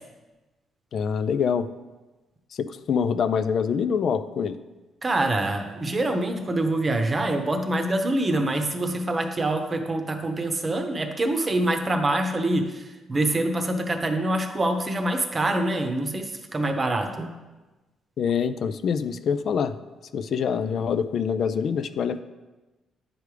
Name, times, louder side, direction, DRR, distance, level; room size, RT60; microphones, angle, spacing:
voice 1, 0.9-1.7 2.5-4.6 18.2-19.7 20.1-22.2, left 7 dB, 60° left, 11 dB, 0.3 m, -25 dB
voice 2, 5.0-17.3, right 1 dB, 30° right, 5 dB, 0.8 m, -25 dB
9.2 x 4.8 x 3.3 m, 1.1 s
cardioid pair, 90°, 0 cm